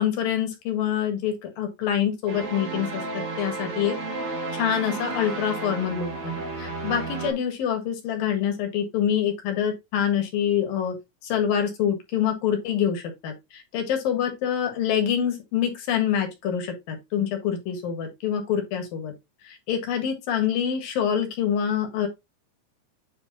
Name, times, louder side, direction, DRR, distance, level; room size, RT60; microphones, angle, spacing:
voice 1, 0.0-4.0 4.5-10.9 11.2-19.1 19.4-22.1, left 9 dB, 70° left, 3.4 m, -26 dB
sound 1, 2.3-7.3, right 3 dB, 75° right, 4.5 m, -32 dB
9.2 x 3.4 x 3.9 m
omnidirectional pair, 4.2 m